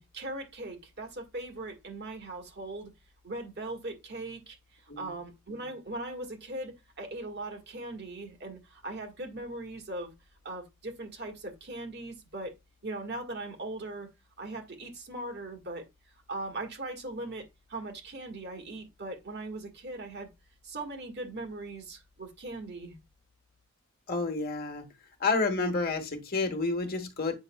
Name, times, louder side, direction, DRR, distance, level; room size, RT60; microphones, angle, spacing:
voice 1, 0.0-2.9 3.2-10.1 10.4-12.5 12.8-14.1 14.4-15.8 16.3-20.3 20.6-23.0, right 2 dB, 50° right, 1.6 m, -39 dB
voice 2, 24.1-24.8 25.2-27.3, left 3 dB, 45° left, 1.2 m, -29 dB
8.0 x 5.7 x 2.2 m
head